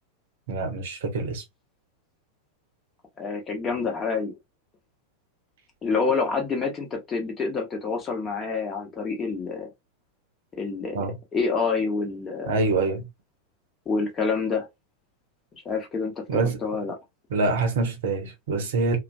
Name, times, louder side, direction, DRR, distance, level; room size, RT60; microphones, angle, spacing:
voice 1, 0.5-1.4 10.9-11.2 12.4-13.1 16.3-16.6 17.3-19.0, right 3 dB, 55° right, 0.7 m, -25 dB
voice 2, 3.2-4.4 5.8-9.7 10.5-11.1 11.3-12.7 13.9-14.7 15.6-17.0, left 4 dB, 20° left, 0.9 m, -27 dB
2.4 x 2.1 x 2.4 m
figure-of-eight pair, 90°, 0 cm